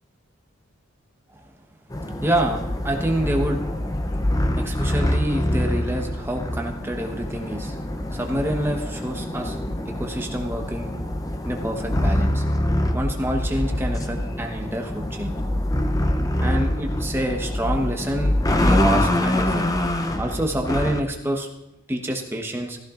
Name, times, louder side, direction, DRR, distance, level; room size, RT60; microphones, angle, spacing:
sound 1, 1.9-21.0, left 1 dB, 15° left, 0.6 m, -25 dB
voice 1, 2.2-3.6 4.6-7.8 8.1-9.6 9.9-10.9 11.4-12.4 12.9-15.3 16.4-18.3 18.6-19.7 20.2-21.5 21.9-22.8, right 1 dB, 10° right, 2 dB, 1.1 m, -27 dB
16.0 x 14.5 x 2.5 m, 0.90 s
head